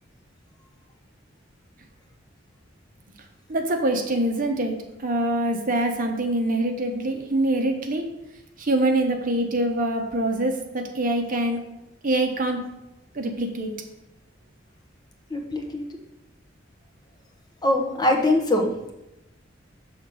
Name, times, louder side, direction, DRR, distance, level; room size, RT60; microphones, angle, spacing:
voice 1, 3.5-8.1 8.6-11.6 12.0-12.6 13.1-13.7, right 1 dB, 45° right, 4 dB, 0.9 m, -24 dB
voice 2, 15.3-15.8 17.6-18.7, left 1 dB, 20° left, 1 dB, 0.9 m, -22 dB
6.4 x 3.6 x 6.2 m, 0.92 s
head